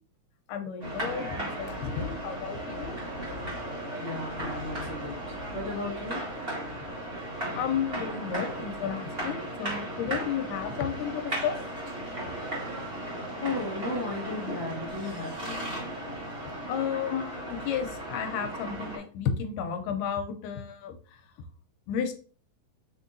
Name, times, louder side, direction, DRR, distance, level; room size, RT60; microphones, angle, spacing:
voice 1, 0.5-3.0 7.5-11.6 16.7-21.2 21.9-22.2, left 7 dB, 80° left, 6 dB, 2.1 m, -32 dB
sound 1, 0.8-19.0, right 1 dB, 30° right, 1.2 m, -36 dB
voice 2, 4.0-6.2 13.3-15.8, left 2 dB, 45° left, -6 dB, 1.7 m, -35 dB
5.7 x 3.6 x 2.6 m, 0.41 s
omnidirectional pair, 3.9 m